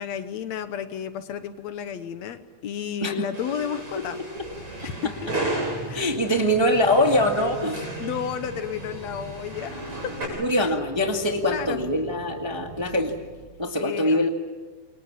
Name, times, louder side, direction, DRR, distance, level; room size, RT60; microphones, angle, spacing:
voice 1, 0.0-4.2 4.8-5.1 5.9-6.2 8.0-10.7 11.5-11.8 13.8-14.3, left 8 dB, 70° left, 11 dB, 2.2 m, -32 dB
sound 1, 3.3-10.2, right 2 dB, 45° right, 8.4 m, -35 dB
sound 2, 4.4-13.5, right 2 dB, 70° right, 7.7 m, -41 dB
voice 2, 5.9-7.9 10.4-13.1 13.6-14.3, left 1 dB, 15° right, 3 dB, 1.3 m, -23 dB
28.0 x 24.0 x 7.3 m, 1.3 s
omnidirectional pair, 3.3 m